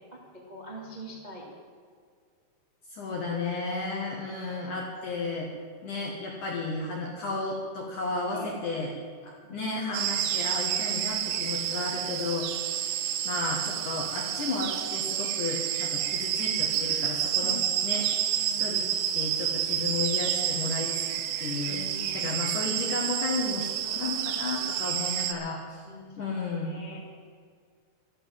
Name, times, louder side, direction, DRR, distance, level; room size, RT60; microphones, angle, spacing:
voice 1, 0.5-1.4 3.7-3.8 8.3-8.5 9.4-9.7 17.4-18.0 18.3-18.7 21.7-22.7 24.7-24.9 25.5-27.0, equal, 25° right, -3 dB, 0.9 m, -44 dB
voice 2, 2.9-5.5 5.8-8.9 9.2-18.0 18.6-18.9 19.1-21.8 22.1-25.8 26.2-26.8, left 3 dB, 60° left, -1 dB, 2.2 m, -33 dB
sound 1, 9.9-25.3, right 11 dB, 80° right, 3.1 m, -29 dB
12.5 x 12.0 x 7.4 m, 2.1 s
omnidirectional pair, 5.7 m